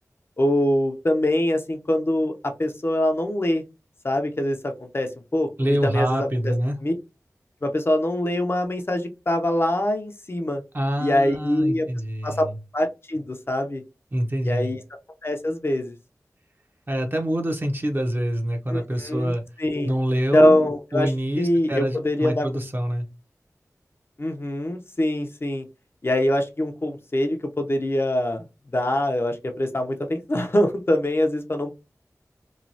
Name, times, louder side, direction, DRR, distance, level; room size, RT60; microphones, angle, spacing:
voice 1, 0.4-3.6 4.0-6.5 6.8-6.9 7.6-10.6 11.0-11.9 12.2-12.5 12.7-13.8 14.4-14.8 15.2-15.9 18.7-19.9 20.3-21.1 21.4-22.5 24.2-25.6 26.0-28.5 28.7-31.7, left 1 dB, 40° left, 5 dB, 0.6 m, -23 dB
voice 2, 5.6-6.8 10.7-12.5 14.1-14.7 16.9-19.4 19.8-20.6 20.9-23.1, equal, 35° right, 3 dB, 0.7 m, -26 dB
3.1 x 2.2 x 2.6 m, 0.26 s
wide cardioid pair, 60°, 6 cm